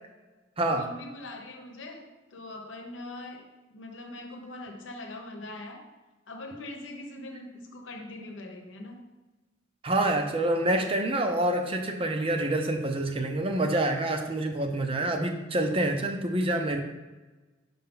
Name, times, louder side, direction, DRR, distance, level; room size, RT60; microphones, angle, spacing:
voice 1, 0.7-5.9 6.3-9.0, left 2 dB, 85° left, 3 dB, 0.9 m, -42 dB
voice 2, 9.8-16.8, right 1 dB, 30° right, 5 dB, 0.6 m, -27 dB
5.6 x 4.8 x 3.7 m, 1.2 s
head